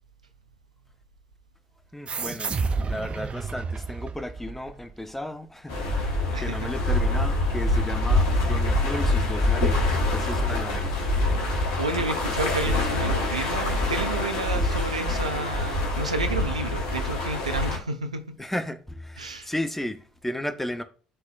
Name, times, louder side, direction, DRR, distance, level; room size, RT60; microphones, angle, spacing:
voice 1, 1.9-2.6 2.9-10.9 14.5-14.7 18.4-20.8, left 1 dB, 5° left, 0.9 m, -34 dB
sound 1, 2.1-5.1, right 4 dB, 35° right, 0.5 m, -31 dB
sound 2, 5.7-17.8, left 2 dB, 70° left, 1.4 m, -25 dB
voice 2, 6.3-6.7 11.8-18.4 19.2-19.5, right 3 dB, 85° right, 0.5 m, -31 dB
10.0 x 4.0 x 2.4 m
figure-of-eight pair, 55°, 4 cm